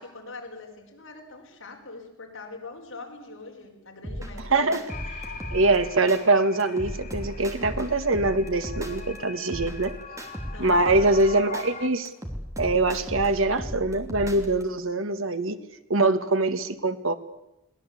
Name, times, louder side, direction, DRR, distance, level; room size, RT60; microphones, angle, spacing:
voice 1, 0.0-4.7 10.5-11.1, left 3 dB, 65° left, 1 dB, 5.3 m, -43 dB
sound 1, 4.0-6.2 6.6-9.2 9.5-11.6 12.0-14.6, equal, 15° right, 3.1 m, -36 dB
voice 2, 4.5-4.8 5.5-9.9 10.6-12.1 12.6-15.6 15.9-17.1, right 2 dB, 70° right, 10 dB, 1.6 m, -23 dB
sound 2, 4.9-11.9, left 5 dB, 40° left, 2.2 m, -42 dB
22.5 x 19.0 x 8.4 m, 0.88 s
head